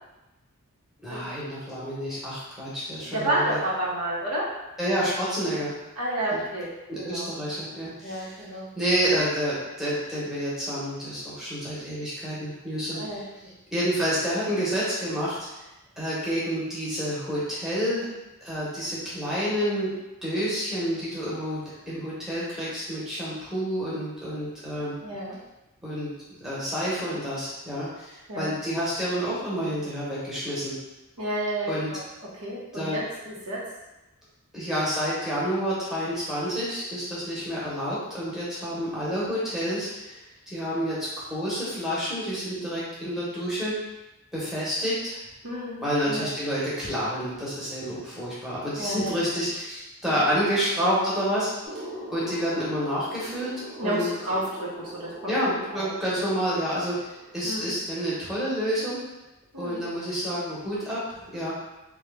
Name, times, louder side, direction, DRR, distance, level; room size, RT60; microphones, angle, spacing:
voice 1, 1.0-3.6 4.8-5.7 6.3-6.4 6.9-8.3 8.8-13.0 13.7-15.4 16.0-18.1 18.4-19.9 20.2-25.0 25.8-26.1 26.4-30.7 31.7-31.9 32.7-33.0 34.5-40.2 40.5-43.7 44.3-45.2 45.8-51.5 52.1-53.5 53.8-54.1 55.3-59.0 59.6-61.5, equal, ahead, -10 dB, 0.9 m, -29 dB
voice 2, 3.1-4.5 6.0-6.7 7.0-7.3 8.0-8.7 12.9-13.2 25.0-25.4 28.3-28.5 31.2-32.0 32.4-33.6 45.4-46.3 48.7-49.2 50.0-50.3 53.8-55.9 57.4-57.7 59.5-59.8, right 1 dB, 80° right, -5 dB, 0.9 m, -30 dB
sound 1, 51.6-57.4, right 1 dB, 30° right, 0.7 m, -42 dB
2.8 x 2.3 x 3.3 m, 1.0 s
head